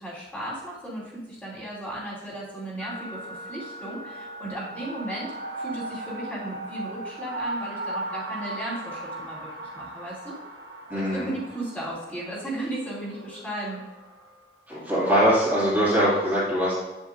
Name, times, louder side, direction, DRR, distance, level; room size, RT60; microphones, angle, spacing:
voice 1, 0.0-10.4 10.9-13.8, right 1 dB, 10° left, -8 dB, 2.7 m, -35 dB
sound 1, 2.8-14.4, right 2 dB, 85° right, 1.2 m, -38 dB
voice 2, 10.9-11.3 14.7-16.7, equal, 10° right, -10 dB, 2.4 m, -22 dB
10.0 x 7.3 x 2.6 m, 1.2 s
head